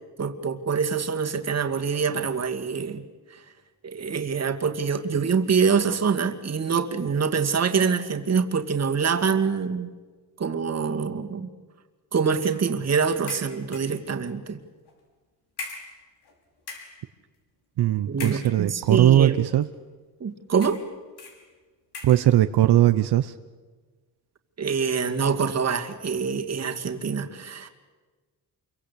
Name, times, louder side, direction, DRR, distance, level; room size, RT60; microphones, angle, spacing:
voice 1, 0.2-3.0 3.3-3.4 3.8-9.9 10.4-11.5 12.1-14.6 18.1-19.4 20.2-20.8 24.6-27.7, right 6 dB, 40° right, 5 dB, 2.3 m, -25 dB
sound 1, 12.4-12.7 13.3-14.0 14.9-15.0 15.6-16.3 16.6-17.0 18.1-18.9 19.6-19.7 20.6-20.9 21.2-21.4 21.9-22.3, left 4 dB, 75° left, 5.9 m, -40 dB
voice 2, 17.8-19.6 22.0-23.3, right 12 dB, 80° right, 9 dB, 0.9 m, -19 dB
28.0 x 23.5 x 8.4 m, 1.4 s
cardioid pair, 130°, 39 cm